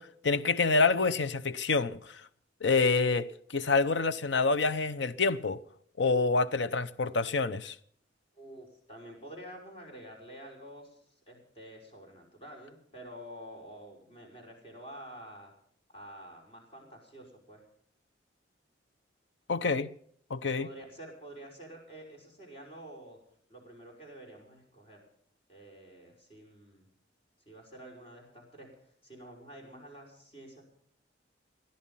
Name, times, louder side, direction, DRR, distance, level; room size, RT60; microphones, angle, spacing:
voice 1, 0.0-2.2 2.6-5.6 6.0-7.8 19.5-19.9 20.3-20.7, left 4 dB, 75° left, 0.7 m, -27 dB
voice 2, 8.4-15.5 15.9-17.6 20.6-23.2 23.5-25.0 25.5-26.9 27.5-30.6, right 1 dB, 30° left, 5.5 m, -49 dB
18.5 x 11.5 x 5.6 m
head